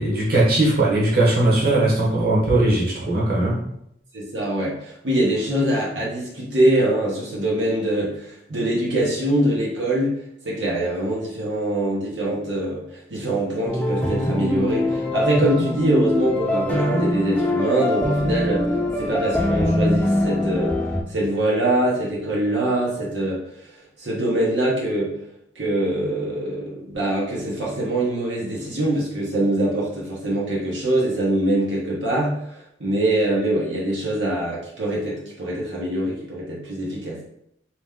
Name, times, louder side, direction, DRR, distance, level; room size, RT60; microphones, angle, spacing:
voice 1, 0.0-3.6, right 2 dB, 55° right, -5 dB, 1.2 m, -19 dB
voice 2, 4.1-10.1 10.4-20.8 21.1-23.7 24.0-25.1 25.5-37.2, right 1 dB, 80° right, -5 dB, 1.0 m, -23 dB
sound 1, 13.7-21.0, left 1 dB, 10° left, 0.4 m, -23 dB
3.4 x 3.0 x 3.6 m, 0.75 s
head